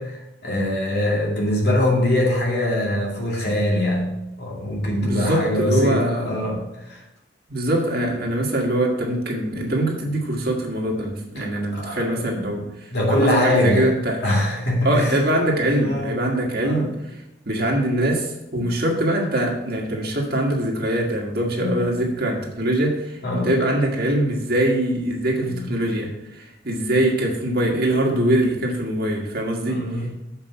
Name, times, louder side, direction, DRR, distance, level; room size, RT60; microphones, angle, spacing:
voice 1, 0.0-7.0 11.4-11.5 11.7-12.6 12.9-13.9 14.2-15.2 15.7-16.2 16.6-16.9 18.6-18.7 21.6-21.8 23.2-23.5 25.4-25.8 28.0-28.3 29.6-30.1, left 1 dB, 55° left, -3 dB, 2.4 m, -23 dB
voice 2, 5.0-6.3 7.5-12.6 13.1-14.2 14.8-16.9 17.4-29.8, right 1 dB, 50° right, 0 dB, 1.6 m, -23 dB
7.2 x 5.2 x 5.7 m, 0.90 s
head